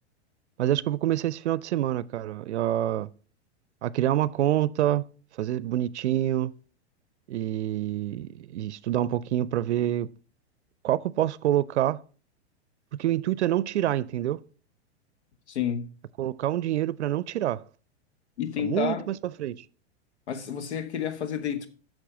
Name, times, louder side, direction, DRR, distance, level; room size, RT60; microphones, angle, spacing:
voice 1, 0.6-3.1 3.8-5.0 5.4-6.5 7.3-10.1 10.8-12.0 13.0-14.4 16.2-17.6 18.6-19.6, right 12 dB, 80° right, 0.5 m, -26 dB
voice 2, 15.5-15.9 18.4-19.0 20.3-21.7, left 9 dB, 75° left, 1.4 m, -30 dB
8.6 x 6.3 x 5.1 m
hypercardioid pair, 105°, 33 cm